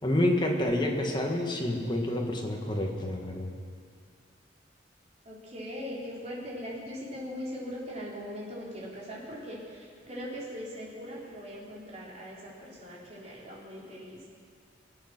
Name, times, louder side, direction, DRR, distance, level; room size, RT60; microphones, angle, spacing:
voice 1, 0.0-3.5, left 1 dB, 25° left, 1 dB, 1.7 m, -28 dB
voice 2, 5.3-14.2, equal, 35° right, -5 dB, 3.7 m, -40 dB
22.5 x 8.5 x 6.1 m, 2.2 s
head